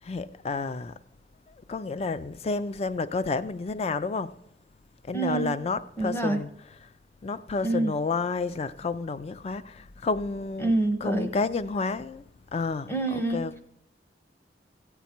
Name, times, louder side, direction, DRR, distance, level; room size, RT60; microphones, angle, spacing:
voice 1, 0.0-1.0 1.7-4.4 5.1-6.9 7.2-12.2 12.5-13.6, left 4 dB, 35° left, 0.3 m, -30 dB
voice 2, 5.1-5.5 6.0-6.4 7.6-7.9 10.6-11.3 12.9-13.4, right 2 dB, 15° left, 0.8 m, -26 dB
15.5 x 8.3 x 4.4 m
head